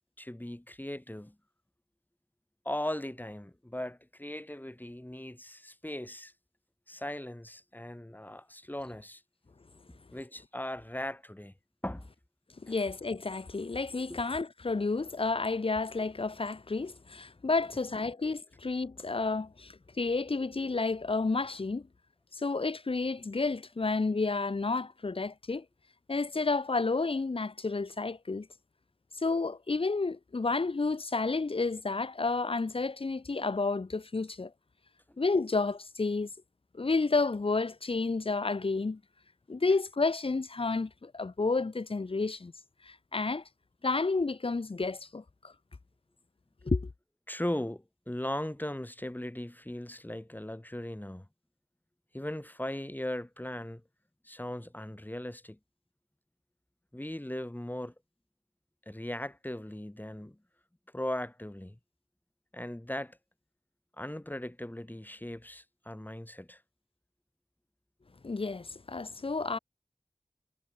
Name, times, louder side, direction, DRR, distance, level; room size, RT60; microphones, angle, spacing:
voice 1, 0.2-1.3 2.6-6.3 6.9-9.2 10.1-11.5 11.8-12.1 12.7-12.9 14.1-14.2 17.6-17.7 18.0-18.1 39.7-39.8 47.3-51.3 52.1-53.8 54.2-55.6 56.9-57.9 58.9-60.4 60.9-61.8 62.5-63.2 64.0-66.6, left 1 dB, 20° left, 4.3 m, -38 dB
voice 2, 12.6-21.9 22.3-25.6 26.1-28.5 29.2-34.5 35.2-36.3 36.7-39.0 39.5-42.5 42.8-43.4 43.8-45.5 46.6-46.9 68.2-69.6, left 3 dB, 70° left, 1.3 m, -31 dB
wide cardioid pair, 45°, 10 cm